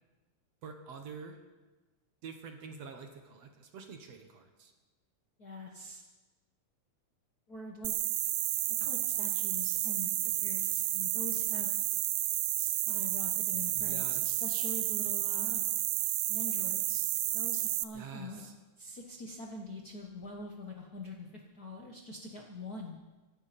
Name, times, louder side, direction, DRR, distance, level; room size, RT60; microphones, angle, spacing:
voice 1, 0.6-1.4 2.2-4.7 13.8-14.4 17.9-18.5, right 5 dB, 60° right, 5 dB, 2.3 m, -47 dB
voice 2, 5.4-6.0 7.5-7.9 8.8-11.7 12.6-15.6 16.3-17.0 17.3-18.4 18.8-23.0, left 2 dB, 45° left, 0 dB, 1.2 m, -44 dB
sound 1, 7.8-17.8, right 14 dB, 75° right, 1.8 m, -31 dB
24.5 x 12.5 x 4.3 m, 1.2 s
omnidirectional pair, 3.4 m